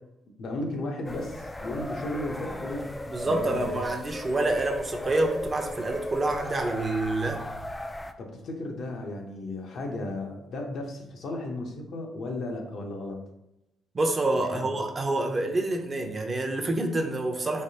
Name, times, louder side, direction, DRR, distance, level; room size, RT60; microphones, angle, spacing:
voice 1, 0.4-3.0 3.2-3.8 8.2-13.2 14.4-14.7, left 2 dB, 65° left, 2 dB, 0.8 m, -34 dB
sound 1, 1.0-8.1, left 1 dB, 15° left, 0.3 m, -37 dB
voice 2, 3.1-7.4 13.9-17.6, right 2 dB, 30° right, 3 dB, 0.6 m, -27 dB
3.3 x 3.3 x 2.8 m, 0.87 s
cardioid pair, 90°, 0 cm